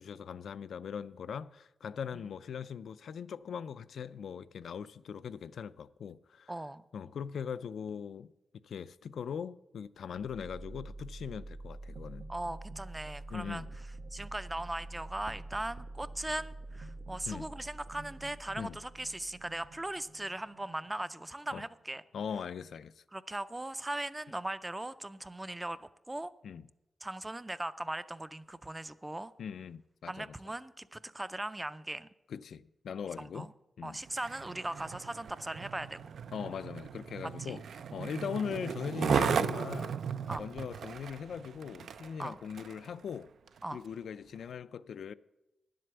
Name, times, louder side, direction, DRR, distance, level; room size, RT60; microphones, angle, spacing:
voice 1, 0.0-6.5 6.9-8.3 8.6-12.2 13.3-13.7 17.3-17.5 18.6-18.8 21.5-21.6 22.1-23.0 26.4-26.7 29.4-30.3 32.3-33.5 33.8-34.0 36.3-37.6 37.9-40.0 40.4-43.3 43.7-45.1, left 7 dB, 85° left, 0.4 m, -40 dB
voice 2, 6.5-6.8 12.3-13.6 14.1-22.0 23.1-26.3 27.0-29.3 30.1-32.1 33.2-33.5 33.8-36.0 37.4-37.6 40.3-40.5 42.2-42.4 43.6-43.8, right 1 dB, 10° right, 0.3 m, -39 dB
sound 1, 10.0-22.0, right 2 dB, 65° right, 1.0 m, -47 dB
Skateboard, 34.0-42.9 43.5-43.6, right 7 dB, 85° right, 0.4 m, -36 dB
10.5 x 7.7 x 8.0 m
wide cardioid pair, 175°, 0 cm